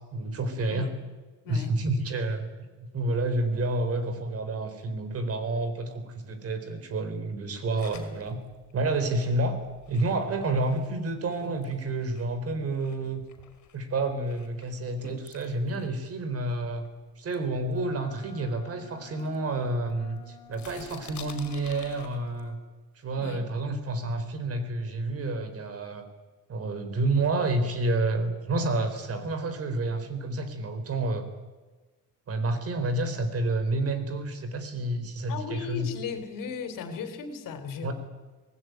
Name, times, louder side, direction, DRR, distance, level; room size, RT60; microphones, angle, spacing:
voice 1, 0.1-0.9 1.5-8.4 8.7-9.6 9.9-13.2 13.7-16.9 17.2-22.6 23.0-26.1 26.5-31.3 32.3-35.9 37.8-37.9, right 2 dB, 45° right, 9 dB, 4.0 m, -29 dB
voice 2, 1.4-1.8 23.2-23.5 35.3-37.9, left 5 dB, 80° left, 9 dB, 3.7 m, -36 dB
sound 1, 7.8-12.4 12.7-16.9 17.3-18.5 19.0-20.2 20.5-22.5, left 8 dB, 60° left, 4.8 m, -51 dB
Wind instrument woodwind instrument, 17.7-22.6, left 6 dB, 20° left, 7.8 m, -51 dB
25.0 x 19.5 x 9.4 m, 1.3 s
cardioid pair, 160°, 33 cm